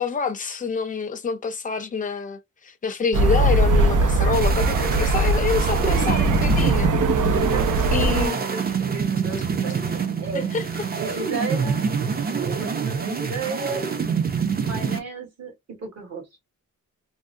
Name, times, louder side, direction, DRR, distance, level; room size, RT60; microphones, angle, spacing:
voice 1, 0.0-7.4 7.9-8.4 10.3-10.7, left 5 dB, 25° left, 0.4 m, -27 dB
sound 1, 3.1-8.3, right 2 dB, 80° right, 0.5 m, -20 dB
sound 2, 4.3-15.0, right 6 dB, 30° right, 0.5 m, -26 dB
voice 2, 5.6-6.0 7.4-10.5 10.9-11.8 12.3-13.8 14.6-16.2, right 5 dB, 55° right, 1.7 m, -33 dB
3.6 x 2.1 x 2.5 m
wide cardioid pair, 165°, 31 cm